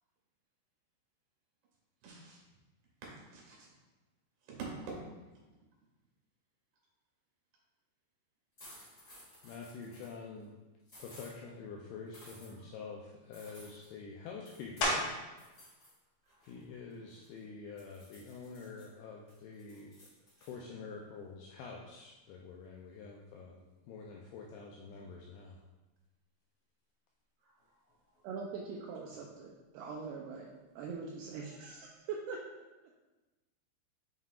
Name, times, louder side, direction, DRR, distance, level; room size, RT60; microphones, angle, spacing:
voice 1, 2.0-2.4 3.3-3.7 4.5-5.0 12.5-12.7 16.3-16.4 27.4-27.8, right 4 dB, 70° right, -4 dB, 3.6 m, -46 dB
sound 1, 8.6-10.1 10.9-11.3 12.1-12.5 13.3-13.9 14.4-15.0 15.4-15.9 16.3-17.4 17.8-18.8 19.3-20.5, left 1 dB, 45° left, 0.9 m, -56 dB
voice 2, 9.4-10.6 11.0-15.1 16.5-19.9 20.4-25.6, left 4 dB, 85° left, -1 dB, 2.2 m, -47 dB
sound 2, 14.8-15.4 16.0-20.4 20.9-26.1 26.4-32.0, left 1 dB, 70° left, 3.7 m, -43 dB
voice 3, 28.2-30.5 30.8-32.6, right 5 dB, 85° right, -1 dB, 2.3 m, -42 dB
7.5 x 5.6 x 2.4 m, 1.1 s
omnidirectional pair, 5.1 m